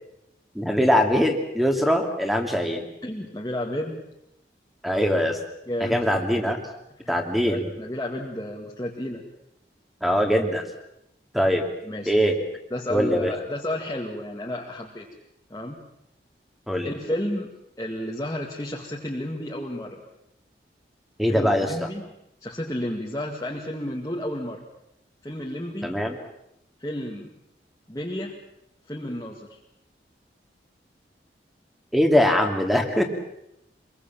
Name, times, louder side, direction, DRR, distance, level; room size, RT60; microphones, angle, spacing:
voice 1, 0.5-2.9 4.8-5.4 5.8-6.6 7.1-7.7 10.0-10.6 11.3-11.6 12.1-12.3 12.9-13.3 16.7-16.9 21.2-21.9 25.8-26.2 31.9-33.0, equal, ahead, 4 dB, 2.8 m, -22 dB
voice 2, 3.0-4.0 5.7-6.0 7.0-7.1 7.5-9.2 11.8-12.1 12.7-15.1 15.5-15.8 16.8-17.5 17.8-20.0 21.3-22.1 22.4-24.6 25.2-25.9 26.8-27.3 27.9-28.4 28.9-29.6, left 1 dB, 20° left, -2 dB, 2.1 m, -31 dB
26.0 x 22.5 x 7.5 m, 0.82 s
head